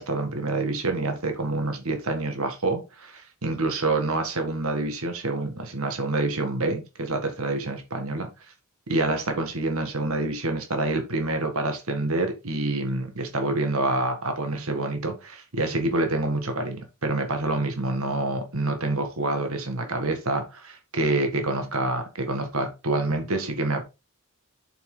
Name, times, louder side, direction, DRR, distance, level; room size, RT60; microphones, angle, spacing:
voice 1, 0.0-8.3 8.9-23.8, right 2 dB, 85° right, 1.7 m, -27 dB
7.3 x 5.9 x 3.8 m
head